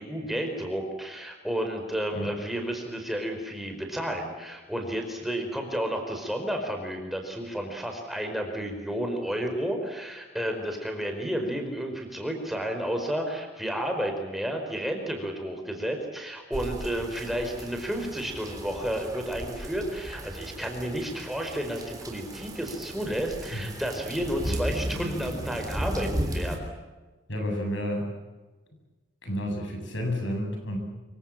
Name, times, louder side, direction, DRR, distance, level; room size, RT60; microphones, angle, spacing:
voice 1, 0.0-26.7, equal, ahead, 3 dB, 4.8 m, -31 dB
sound 1, 16.5-26.6, equal, 20° right, 3.4 m, -35 dB
voice 2, 27.3-28.1 29.2-30.8, equal, 70° left, 3 dB, 8.0 m, -30 dB
26.0 x 24.5 x 7.6 m, 1.2 s
head